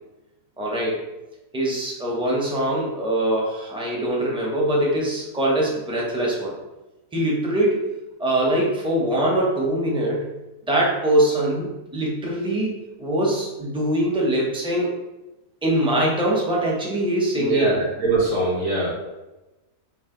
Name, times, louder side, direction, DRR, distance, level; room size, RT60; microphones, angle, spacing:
voice 1, 0.6-1.0 1.5-6.6 7.1-7.8 8.2-10.3 10.7-12.7 13.0-14.9 15.6-17.7, right 1 dB, 5° right, -4 dB, 0.6 m, -22 dB
voice 2, 17.4-18.9, right 2 dB, 70° right, -5 dB, 1.7 m, -22 dB
5.7 x 2.4 x 3.7 m, 1.0 s
omnidirectional pair, 1.5 m